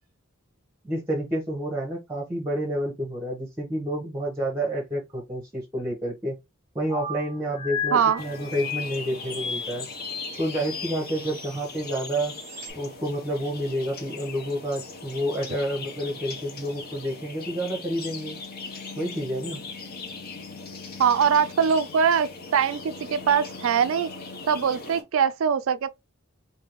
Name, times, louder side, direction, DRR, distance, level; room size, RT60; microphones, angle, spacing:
voice 1, 0.8-6.3 6.7-9.9 10.4-12.3 12.8-18.4 19.0-19.6, right 1 dB, 15° right, 0.9 m, -29 dB
sound 1, 6.9-12.7, left 5 dB, 85° left, 1.6 m, -36 dB
voice 2, 7.9-8.2 21.0-24.1 24.5-25.9, right 7 dB, 75° right, 0.4 m, -22 dB
sound 2, 8.2-25.0, left 4 dB, 45° left, 0.8 m, -40 dB
3.4 x 2.8 x 2.9 m
head